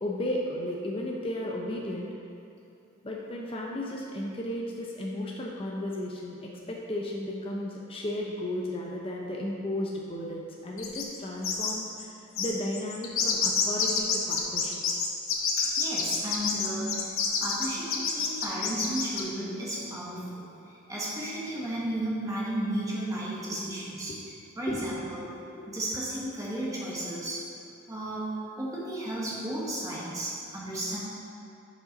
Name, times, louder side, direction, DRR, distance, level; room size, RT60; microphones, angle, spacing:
voice 1, 0.0-2.1 3.0-14.7 24.1-24.2 24.7-25.0 25.5-25.8, left 1 dB, 25° left, -2 dB, 0.6 m, -34 dB
sound 1, 10.8-11.2 11.4-11.7 12.0-12.1 12.4-19.2, left 6 dB, 70° left, 0.8 m, -28 dB
voice 2, 15.4-17.1 17.4-24.2 24.6-25.2 25.7-27.5 27.9-31.0, right 1 dB, 15° right, -6 dB, 1.3 m, -34 dB
6.6 x 5.1 x 5.2 m, 2.7 s
head